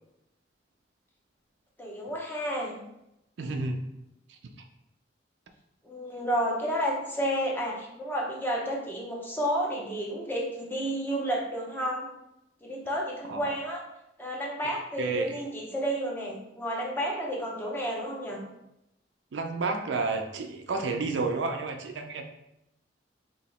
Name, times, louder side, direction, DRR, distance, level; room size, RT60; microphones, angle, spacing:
voice 1, 1.8-2.8 5.8-12.1 12.6-13.8 14.2-18.4, equal, 10° left, -2 dB, 0.7 m, -31 dB
voice 2, 3.4-3.8 4.3-4.4 13.3-13.6 15.0-15.4 19.3-22.3, right 3 dB, 75° right, 5 dB, 0.4 m, -31 dB
2.9 x 2.8 x 4.1 m, 0.86 s
head